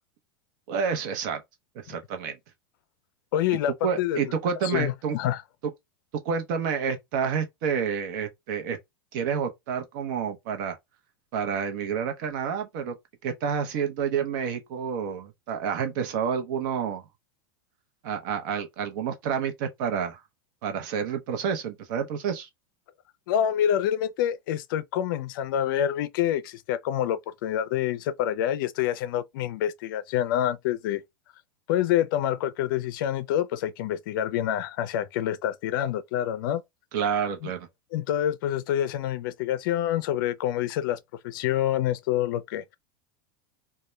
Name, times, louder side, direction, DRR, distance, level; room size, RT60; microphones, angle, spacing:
voice 1, 0.7-1.4 1.8-2.4 3.8-5.2 6.2-8.8 9.1-10.8 11.3-12.9 13.2-17.0 18.0-20.2 20.6-22.5 36.9-37.7, right 7 dB, 60° right, 0.7 m, -29 dB
voice 2, 3.3-4.3 4.6-5.4 23.3-31.0 31.7-36.6 37.4-37.5 37.9-41.0 41.2-42.8, left 11 dB, 65° left, 0.4 m, -27 dB
2.2 x 2.1 x 3.0 m
hypercardioid pair, 110°, 12 cm